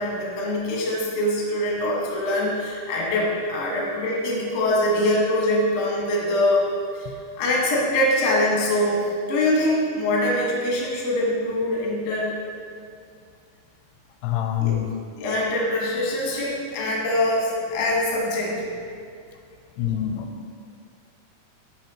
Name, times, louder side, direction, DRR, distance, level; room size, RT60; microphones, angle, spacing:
voice 1, 0.0-6.7 6.9-7.1 7.4-12.4 14.6-14.7 15.2-18.7, left 1 dB, 70° left, -4 dB, 1.8 m, -23 dB
voice 2, 14.2-14.9 19.8-20.3, left 11 dB, 90° left, 5 dB, 2.9 m, -25 dB
10.5 x 4.5 x 2.9 m, 2.2 s
omnidirectional pair, 5.2 m